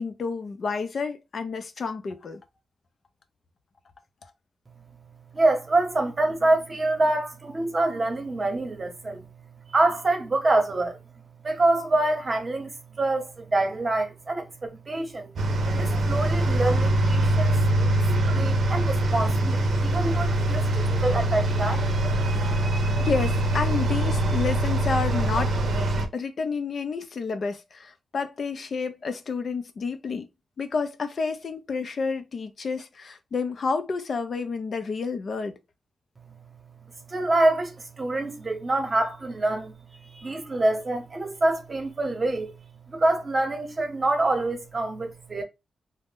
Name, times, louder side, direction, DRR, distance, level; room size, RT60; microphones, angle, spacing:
voice 1, 0.0-2.4 23.0-25.6 26.1-30.3 30.6-35.5, left 4 dB, 60° left, 0.5 m, -30 dB
voice 2, 5.3-9.3 9.7-11.0 11.4-15.3 15.7-17.6 17.9-21.9 37.1-39.7 40.1-42.5 42.9-45.4, right 2 dB, 40° right, 0.8 m, -26 dB
sound 1, 15.4-26.1, right 1 dB, 75° right, 0.6 m, -23 dB
2.5 x 2.1 x 3.5 m
cardioid pair, 75°, 0 cm